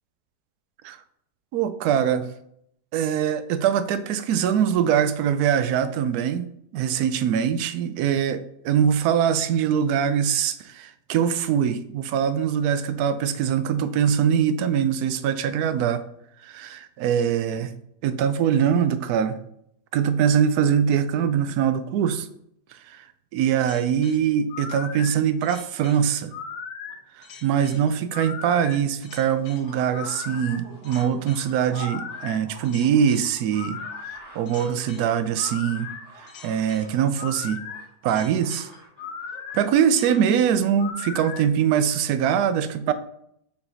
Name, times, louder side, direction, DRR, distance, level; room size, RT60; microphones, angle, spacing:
voice 1, 1.5-2.3 2.9-6.5 6.7-16.0 16.4-17.7 18.0-19.4 19.9-22.3 22.9-23.0 23.3-26.3 27.2-33.8 34.1-35.9 36.4-37.6 38.0-38.7 39.5-42.9, right 8 dB, 70° right, 12 dB, 1.0 m, -23 dB
sound 1, 23.6-41.5, left 6 dB, 85° left, 1.4 m, -38 dB
sound 2, 24.1-25.7 26.5-26.6 26.9-27.0 27.3-27.4 27.7-27.8 28.4-40.2 40.5-40.9, right 2 dB, 45° right, 2.5 m, -48 dB
5.4 x 4.6 x 4.0 m, 0.73 s
omnidirectional pair, 1.9 m